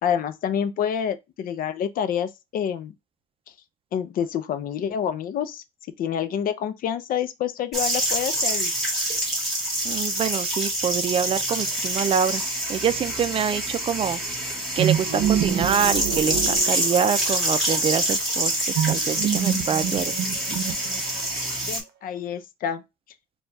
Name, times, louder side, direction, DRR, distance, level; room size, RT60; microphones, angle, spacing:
voice 1, 0.0-2.9 3.9-5.6 6.0-8.7 21.6-22.8, left 8 dB, 55° left, 0.5 m, -27 dB
sound 1, 7.7-21.8, right 1 dB, ahead, 1.6 m, -26 dB
voice 2, 9.8-12.4 12.7-14.2 14.8-20.1 20.5-20.6, right 7 dB, 35° right, 0.4 m, -25 dB
sound 2, 14.8-17.3 18.8-21.2, right 9 dB, 80° right, 0.7 m, -26 dB
4.3 x 2.3 x 2.6 m
cardioid pair, 110°, 17 cm